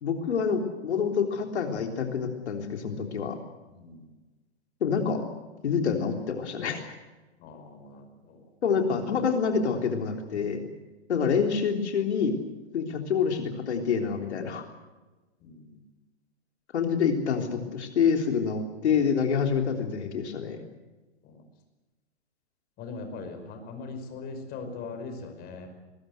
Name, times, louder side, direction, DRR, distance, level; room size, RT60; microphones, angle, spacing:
voice 1, 0.0-3.4 4.8-5.2 5.6-6.9 8.6-10.6 11.1-12.4 12.7-14.6 16.7-20.6, left 6 dB, 80° left, 4 dB, 3.6 m, -27 dB
voice 2, 7.4-8.1 15.4-15.7 21.2-21.4 22.8-25.7, left 4 dB, 30° left, 6 dB, 5.2 m, -40 dB
22.5 x 21.0 x 8.0 m, 1.2 s
hypercardioid pair, 145°, 33 cm